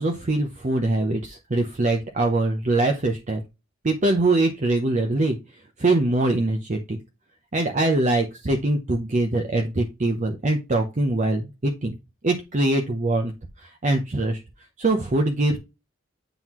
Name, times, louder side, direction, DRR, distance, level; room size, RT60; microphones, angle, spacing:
voice 1, 0.0-3.4 3.8-5.4 5.8-7.0 7.5-12.0 12.2-13.3 13.6-14.4 14.8-15.6, right 2 dB, 40° right, 4 dB, 0.7 m, -23 dB
9.0 x 3.9 x 3.0 m, 0.26 s
head